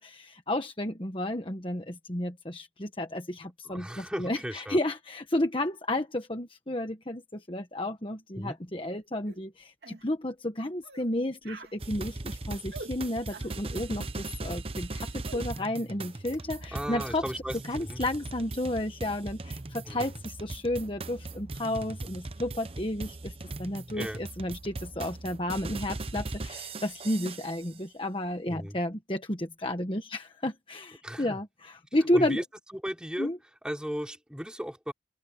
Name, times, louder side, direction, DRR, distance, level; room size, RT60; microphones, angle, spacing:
voice 1, 0.0-17.2 17.7-23.3 23.6-32.4 33.2-33.4, left 1 dB, 30° left, 1.4 m, -32 dB
voice 2, 3.7-4.8 8.4-8.6 16.7-18.0 19.9-20.0 23.9-24.2 28.5-28.8 31.0-31.4 32.1-32.4 32.7-33.3 33.6-34.9, equal, 5° right, 5.3 m, -36 dB
sound 1, 9.3-9.4 9.8-10.0 10.8-11.1 11.4-11.8 12.7-12.9 13.3-13.6 15.3-15.5, right 2 dB, 65° right, 2.6 m, -44 dB
sound 2, 11.8-27.7, right 2 dB, 30° right, 0.9 m, -39 dB
open air
head